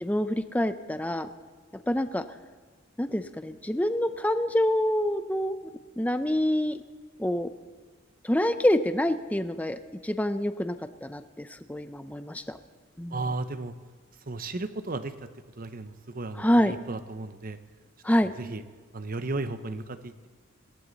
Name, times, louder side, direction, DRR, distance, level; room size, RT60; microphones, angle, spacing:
voice 1, 0.0-1.3 1.7-2.2 3.0-5.6 6.0-6.8 7.2-7.5 8.2-10.8 11.0-12.6 13.0-13.2 16.4-16.7 18.0-18.3, left 1 dB, 5° left, 10 dB, 0.6 m, -26 dB
voice 2, 13.1-13.8 14.3-15.3 15.6-17.6 18.4-18.6 18.9-20.3, right 2 dB, 45° right, 11 dB, 0.8 m, -34 dB
21.0 x 16.0 x 4.1 m, 1.4 s
head